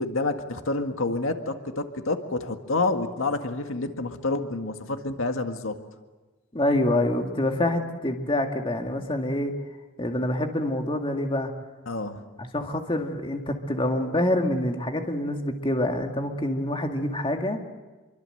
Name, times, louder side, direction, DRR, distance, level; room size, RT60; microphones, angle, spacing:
voice 1, 0.0-5.7 11.9-12.2, left 2 dB, 85° left, 6 dB, 1.9 m, -28 dB
voice 2, 6.5-9.5 10.0-11.5 12.4-17.6, left 1 dB, 25° left, 3 dB, 2.2 m, -26 dB
26.5 x 24.0 x 7.9 m, 1.2 s
head